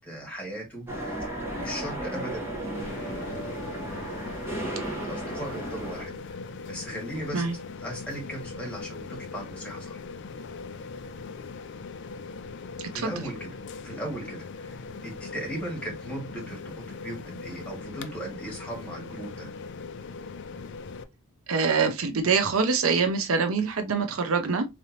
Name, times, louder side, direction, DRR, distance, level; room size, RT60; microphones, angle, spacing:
voice 1, 0.0-4.4 4.6-6.4 6.7-7.4 7.8-10.0 12.9-13.5 13.8-19.5, right 1 dB, 5° left, 1.7 m, -38 dB
sound 1, 0.9-6.1, right 1 dB, 10° right, 1.2 m, -34 dB
sound 2, 2.7-21.0, left 4 dB, 55° left, 0.5 m, -40 dB
voice 2, 12.8-13.2 21.5-24.7, right 5 dB, 75° right, 0.6 m, -25 dB
3.8 x 3.3 x 2.8 m
head